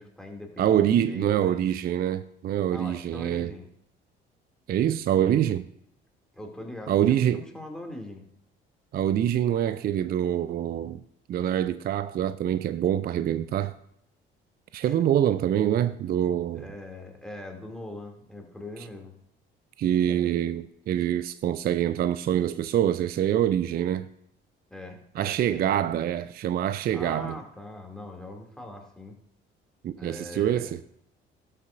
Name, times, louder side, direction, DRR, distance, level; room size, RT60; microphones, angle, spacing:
voice 1, 0.0-1.7 2.7-3.7 6.3-8.2 14.8-15.0 16.6-19.1 24.7-25.9 26.9-29.2 30.0-30.8, left 1 dB, ahead, 2.5 m, -41 dB
voice 2, 0.6-3.5 4.7-5.7 6.9-7.4 8.9-11.0 11.3-13.7 14.7-16.7 19.8-24.1 25.2-27.4 29.8-30.8, right 10 dB, 35° right, 0.4 m, -25 dB
18.0 x 6.6 x 2.5 m
figure-of-eight pair, 50°, 29 cm